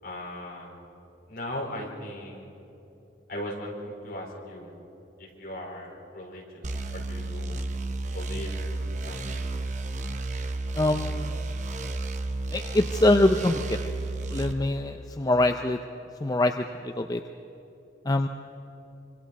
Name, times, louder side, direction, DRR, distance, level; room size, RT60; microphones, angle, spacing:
voice 1, 0.0-0.8 1.3-2.5 3.3-4.7 5.2-6.6 6.9-7.6 8.1-8.5 8.8-9.6, left 1 dB, 55° left, -2 dB, 4.4 m, -38 dB
sound 1, 6.6-14.5, right 2 dB, 40° right, 0.9 m, -32 dB
voice 2, 10.7-11.4 12.5-13.9 14.3-15.8 16.2-17.2 18.0-18.3, left 1 dB, 20° left, 6 dB, 0.5 m, -24 dB
25.5 x 25.0 x 4.1 m, 3.0 s
head